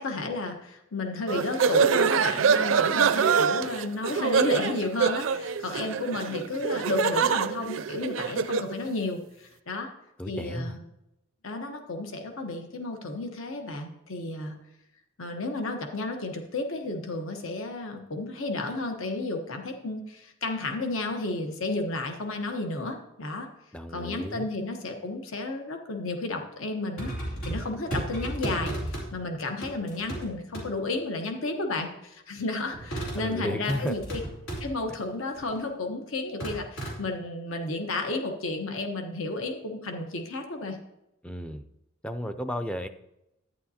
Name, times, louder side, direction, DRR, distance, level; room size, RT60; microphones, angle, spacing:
voice 1, 0.0-9.9 10.3-10.8 11.4-14.6 15.2-23.5 23.9-34.2 34.6-40.8, left 2 dB, 70° left, 4 dB, 1.1 m, -32 dB
sound 1, 1.3-8.7, right 6 dB, 70° right, 0.4 m, -25 dB
voice 2, 10.2-10.8 23.7-24.5 33.1-34.0 41.2-41.7 42.0-42.9, equal, 5° left, 8 dB, 0.4 m, -33 dB
sound 2, 27.0-29.1 29.6-30.3 30.5-30.6 32.7-33.2 33.7-34.7 35.3-35.6 36.4-37.0, right 1 dB, 90° left, 3.0 m, -34 dB
11.5 x 9.4 x 2.8 m, 0.87 s
head